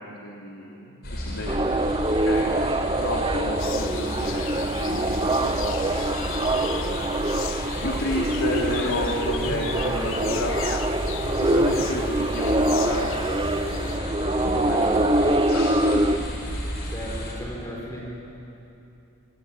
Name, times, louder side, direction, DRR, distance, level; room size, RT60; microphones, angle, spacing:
voice 1, 0.0-1.8 2.1-2.6 2.8-4.6 4.9-7.4 7.8-10.8 11.3-14.2 14.4-16.0, left 1 dB, 80° left, -3 dB, 3.1 m, -32 dB
sound 1, 1.0-17.3, equal, 45° left, 5.3 m, -33 dB
sound 2, 1.5-16.2, right 1 dB, 20° right, 0.8 m, -25 dB
sound 3, 3.6-14.0, left 11 dB, 60° left, 0.6 m, -38 dB
voice 2, 16.8-18.0, equal, 15° left, -3 dB, 5.2 m, -36 dB
27.0 x 24.5 x 8.9 m, 2.9 s
head